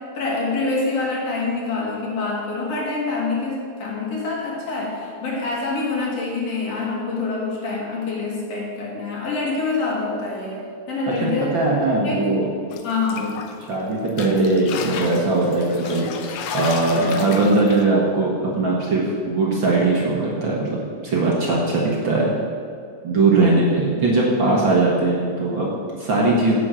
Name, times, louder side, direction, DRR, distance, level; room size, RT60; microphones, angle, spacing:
voice 1, 0.0-11.6 11.9-12.3 12.8-13.3, left 3 dB, 60° left, -3 dB, 3.1 m, -26 dB
voice 2, 11.1-12.5 13.1-13.3 13.7-16.0 16.5-22.3 23.0-26.5, right 2 dB, 45° right, -3 dB, 2.0 m, -20 dB
sound 1, 12.7-13.8 14.1-17.8, left 6 dB, 80° left, 2.2 m, -33 dB
11.0 x 6.4 x 7.6 m, 2.3 s
omnidirectional pair, 3.3 m